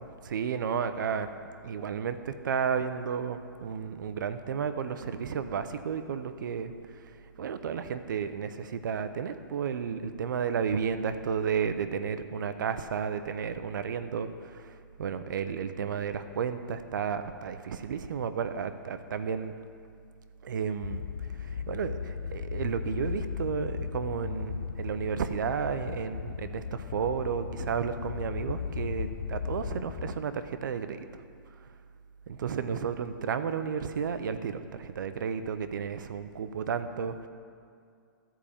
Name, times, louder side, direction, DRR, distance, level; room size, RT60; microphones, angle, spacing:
voice 1, 0.0-1.4 1.6-6.7 7.4-19.5 20.4-21.0 21.4-31.1 32.3-37.3, right 6 dB, 60° right, 10 dB, 0.7 m, -32 dB
sound 1, 20.8-30.2, left 6 dB, 60° left, 0.6 m, -36 dB
13.0 x 5.0 x 7.0 m, 2.3 s
hypercardioid pair, 165°, 12 cm